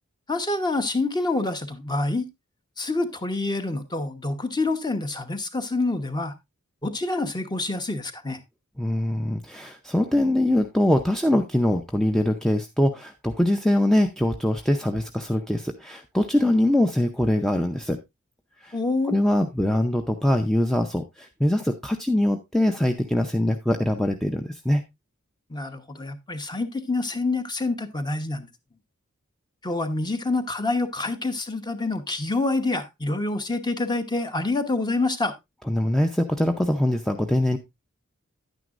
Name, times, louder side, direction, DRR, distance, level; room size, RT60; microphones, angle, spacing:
voice 1, 0.3-2.3 2.8-6.3 6.8-8.4 18.7-19.2 25.5-28.5 29.6-35.3, left 2 dB, 20° left, 0.9 m, -27 dB
voice 2, 8.8-18.0 18.6-18.7 19.1-24.8 35.7-37.6, left 1 dB, ahead, 0.6 m, -23 dB
10.5 x 9.2 x 2.5 m
head